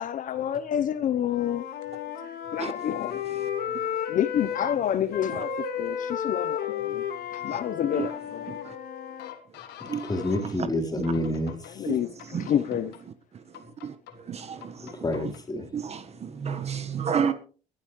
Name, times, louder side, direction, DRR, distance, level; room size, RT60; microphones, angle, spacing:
voice 1, 0.0-1.7 2.2-3.2 4.1-7.0 7.3-8.5 11.7-13.0, left 10 dB, 50° left, 0.8 m, -29 dB
Wind instrument woodwind instrument, 1.2-4.8 5.1-9.3, left 8 dB, 75° left, 2.5 m, -33 dB
sound 1, 1.7-10.6 11.0-11.7 12.2-13.0 13.5-14.1 14.6-15.4, left 12 dB, 90° left, 2.4 m, -43 dB
voice 2, 10.1-11.9 14.8-15.7, left 1 dB, 25° left, 3.8 m, -29 dB
voice 3, 13.3-15.0 15.7-17.3, right 7 dB, 40° right, 1.4 m, -31 dB
21.5 x 12.0 x 3.2 m
cardioid pair, 110°, 17 cm